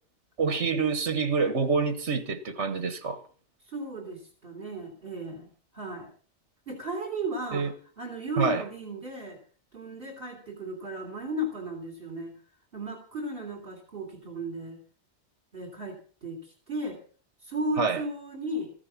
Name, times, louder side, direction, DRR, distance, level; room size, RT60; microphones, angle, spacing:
voice 1, 0.4-3.2 7.5-7.7 8.4-8.6 17.8-18.0, right 5 dB, 75° right, 1.6 m, -26 dB
voice 2, 3.7-6.1 6.7-9.4 9.7-12.3 12.7-14.8 15.5-17.0 17.4-18.7, right 1 dB, 55° right, 3.5 m, -35 dB
14.5 x 10.5 x 5.9 m
omnidirectional pair, 1.2 m